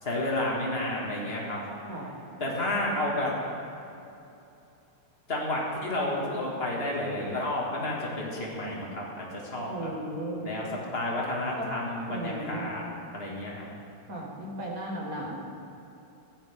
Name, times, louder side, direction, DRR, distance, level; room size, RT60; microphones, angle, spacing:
voice 1, 0.0-1.6 2.4-3.3 5.3-9.9 10.4-12.8 13.1-13.7, left 1 dB, 30° left, -3 dB, 2.3 m, -31 dB
voice 2, 9.7-10.5 11.6-11.7 12.1-12.7 14.1-15.4, right 1 dB, 40° right, -3 dB, 2.2 m, -36 dB
15.5 x 14.5 x 3.7 m, 2.8 s
omnidirectional pair, 2.3 m